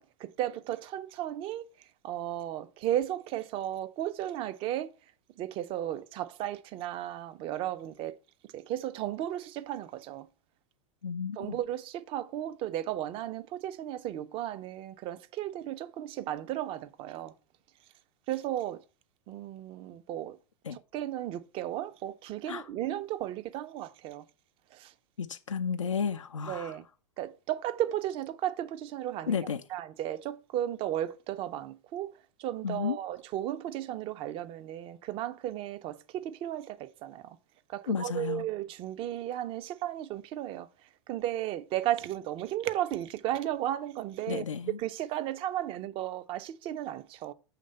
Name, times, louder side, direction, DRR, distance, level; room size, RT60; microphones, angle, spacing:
voice 1, 0.0-5.0 5.4-8.2 8.5-10.3 11.4-17.3 18.3-18.8 19.3-20.4 20.7-24.3 24.7-24.9 26.5-26.9 27.2-37.4 37.7-47.3, right 12 dB, 35° right, 0.5 m, -35 dB
voice 2, 11.0-11.6 20.7-20.8 22.5-22.6 25.2-26.7 29.3-29.6 32.6-33.0 37.9-38.4 44.3-44.8, left 6 dB, 85° left, 0.4 m, -32 dB
6.5 x 3.2 x 5.3 m
figure-of-eight pair, 90°, 16 cm